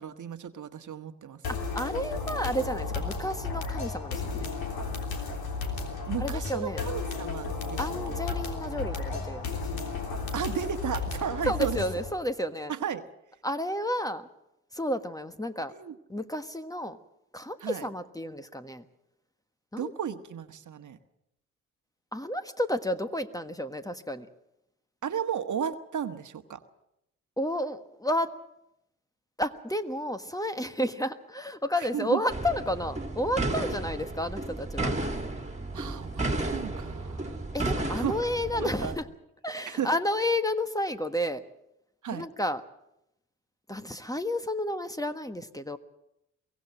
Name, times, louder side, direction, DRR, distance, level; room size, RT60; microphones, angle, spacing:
voice 1, 0.0-1.4 6.1-8.2 10.3-11.8 12.7-13.1 15.7-15.9 17.6-17.9 19.8-21.0 25.0-26.6 31.8-32.2 35.7-37.4 37.9-38.1 38.5-38.9 39.7-39.9 42.0-42.3, right 8 dB, 50° right, 9 dB, 1.5 m, -34 dB
sound 1, 1.4-12.1, left 4 dB, 65° left, 3.5 m, -33 dB
voice 2, 1.5-4.5 6.2-6.8 7.8-9.4 11.5-12.7 13.4-14.3 14.7-15.7 16.1-17.0 17.3-18.8 19.7-19.9 22.1-24.3 27.4-28.3 29.4-34.9 37.5-39.0 39.4-41.4 42.1-42.6 43.7-45.8, equal, 10° left, 9 dB, 1.4 m, -31 dB
sound 2, 32.3-39.0, right 2 dB, 15° right, 2.5 m, -33 dB
23.5 x 16.5 x 7.7 m, 0.85 s
hypercardioid pair, 45°, 39 cm